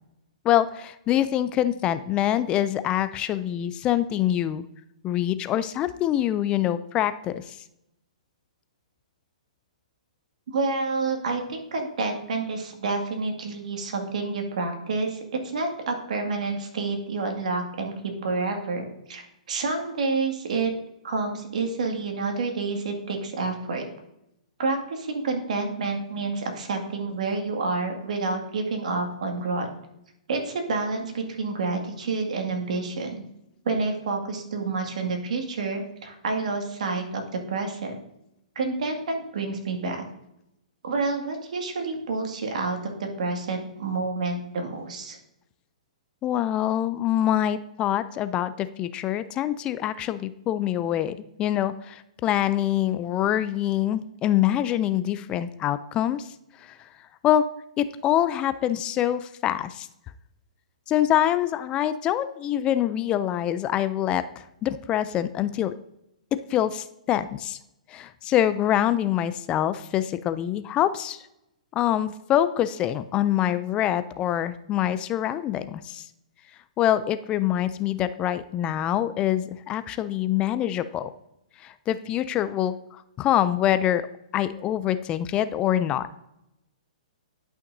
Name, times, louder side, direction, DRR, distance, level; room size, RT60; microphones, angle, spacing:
voice 1, 0.4-4.6 5.0-7.6 46.2-56.3 56.6-56.8 57.2-57.5 57.8-59.9 60.9-65.7 66.5-67.6 67.9-71.2 71.7-76.1 76.8-81.1 81.6-84.1 84.3-86.2, left 11 dB, 25° left, 13 dB, 0.3 m, -25 dB
voice 2, 10.5-17.9 18.2-20.7 21.0-23.8 24.6-29.7 30.3-33.2 33.7-37.2 37.5-38.0 38.6-40.0 40.8-45.2, right 3 dB, 70° right, 3 dB, 2.0 m, -29 dB
11.0 x 5.8 x 2.6 m, 0.84 s
hypercardioid pair, 135°, 4 cm